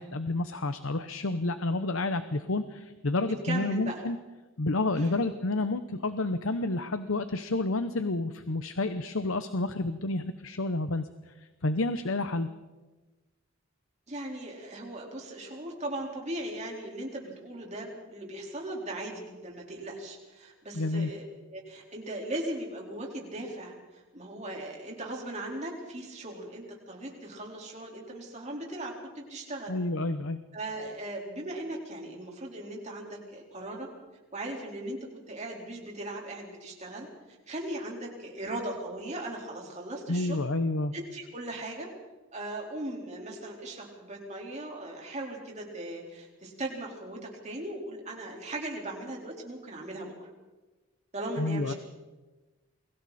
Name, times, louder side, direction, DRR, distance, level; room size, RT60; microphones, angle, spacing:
voice 1, 0.0-4.2 4.6-12.5 20.7-21.1 29.7-30.4 40.1-40.9 51.4-51.7, left 2 dB, 75° left, 10 dB, 1.0 m, -30 dB
voice 2, 3.2-4.0 4.9-5.3 14.1-21.2 21.5-29.7 30.5-33.9 34.3-35.0 35.3-40.5 40.9-41.9 42.3-50.3 51.1-51.8, right 1 dB, 35° right, -1 dB, 4.4 m, -38 dB
29.5 x 22.5 x 4.3 m, 1.2 s
head